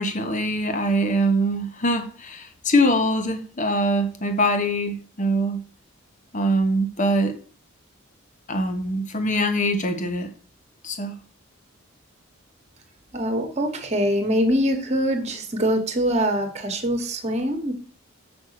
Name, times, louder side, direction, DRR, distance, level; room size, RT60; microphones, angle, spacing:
voice 1, 0.0-5.6 6.3-7.4 8.5-10.3 10.8-11.2, equal, 35° left, 1.1 m, -23 dB
voice 2, 13.1-17.7, equal, 30° right, 1.4 m, -23 dB
6.2 x 5.3 x 6.6 m
head